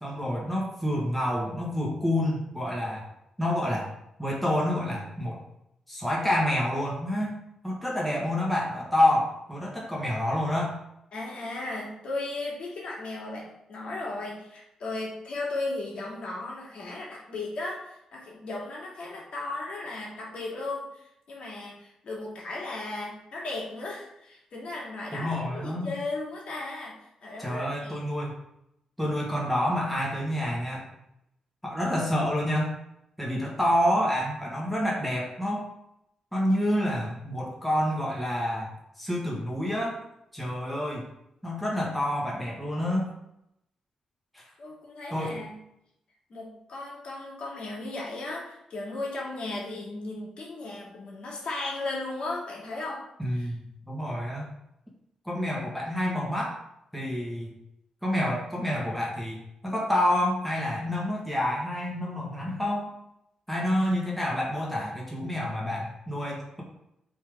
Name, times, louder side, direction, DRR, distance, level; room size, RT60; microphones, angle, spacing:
voice 1, 0.0-3.0 3.4-3.9 4.2-5.4 5.9-7.4 7.6-10.8 25.1-25.9 27.4-28.3 29.0-30.9 31.6-32.7 33.2-35.6 36.3-38.7 39.0-40.0 40.3-41.1 41.4-43.1 44.3-44.5 45.1-45.4 53.2-54.5 55.2-56.6 56.9-57.5 58.0-62.9 63.5-66.6, left 1 dB, ahead, -4 dB, 1.5 m, -28 dB
voice 2, 11.1-25.4 25.6-28.0 44.6-45.6 46.3-53.0 53.3-53.5, left 2 dB, 60° left, -3 dB, 2.1 m, -36 dB
8.5 x 3.7 x 3.5 m, 0.79 s
wide cardioid pair, 135°, 2 cm